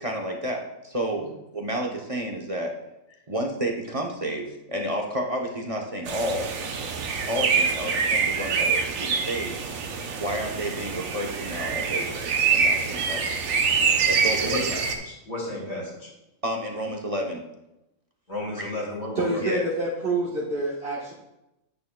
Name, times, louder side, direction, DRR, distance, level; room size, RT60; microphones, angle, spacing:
voice 1, 0.0-2.8 3.3-6.5 7.3-9.6 10.2-13.5 14.1-14.7 16.4-17.4 18.6-18.7 19.4-19.6, right 1 dB, 30° right, 0 dB, 0.8 m, -30 dB
sound 1, 6.0-14.9, right 5 dB, 80° right, 1.2 m, -25 dB
voice 2, 14.4-14.8 15.1-16.1 18.3-19.4, left 1 dB, 75° left, -5 dB, 3.2 m, -33 dB
voice 3, 19.2-21.1, right 2 dB, 50° right, -6 dB, 1.5 m, -27 dB
9.5 x 8.8 x 2.2 m, 0.91 s
omnidirectional pair, 1.4 m